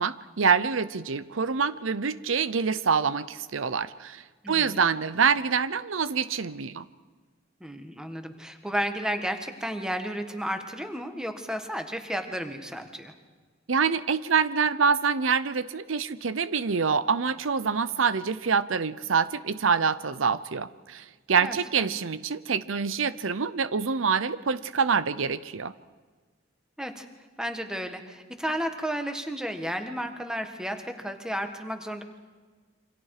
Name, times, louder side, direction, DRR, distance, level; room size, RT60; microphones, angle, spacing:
voice 1, 0.0-6.8 13.7-25.7, right 5 dB, 85° right, 15 dB, 0.7 m, -26 dB
voice 2, 4.4-4.8 7.6-13.1 21.4-22.0 26.8-27.1 27.4-32.0, equal, 5° right, 6 dB, 1.7 m, -33 dB
28.0 x 25.0 x 5.0 m, 1.4 s
head